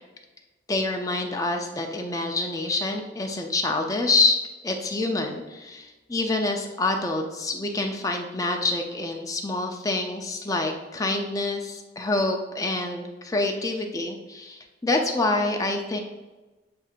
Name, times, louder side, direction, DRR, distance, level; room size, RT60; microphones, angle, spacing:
voice 1, 0.7-4.4 4.6-16.0, left 2 dB, 20° left, 3 dB, 0.5 m, -26 dB
7.7 x 2.7 x 2.5 m, 1.2 s
head